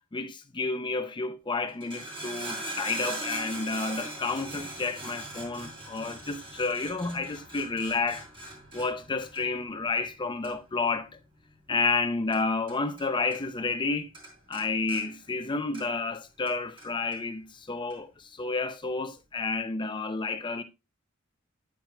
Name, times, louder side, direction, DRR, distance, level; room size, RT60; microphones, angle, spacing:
voice 1, 0.1-8.3 8.7-11.2 11.7-14.1 14.5-20.6, left 3 dB, 25° left, 0.6 m, -30 dB
sound 1, 1.7-13.1 13.3-13.9 14.1-16.1 16.5-17.2 17.9-18.0, right 1 dB, 25° right, 3.6 m, -41 dB
9.2 x 9.2 x 2.2 m
head